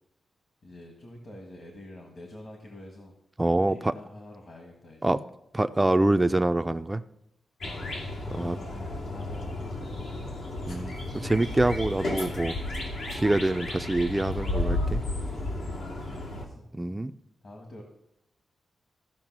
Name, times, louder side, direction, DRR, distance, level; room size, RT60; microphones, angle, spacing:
voice 1, 0.6-3.1 3.6-5.1 7.6-9.9 15.6-16.6 17.4-17.8, left 1 dB, 45° left, 1 dB, 1.5 m, -47 dB
voice 2, 3.4-3.9 5.0-5.2 5.5-7.0 8.4-8.6 10.7-12.6 13.1-15.0 16.8-17.1, right 2 dB, 10° right, 9 dB, 0.3 m, -25 dB
sound 1, 7.6-16.5, left 2 dB, 85° left, 2.3 m, -33 dB
14.5 x 6.0 x 6.0 m, 0.83 s
wide cardioid pair, 165°, 0 cm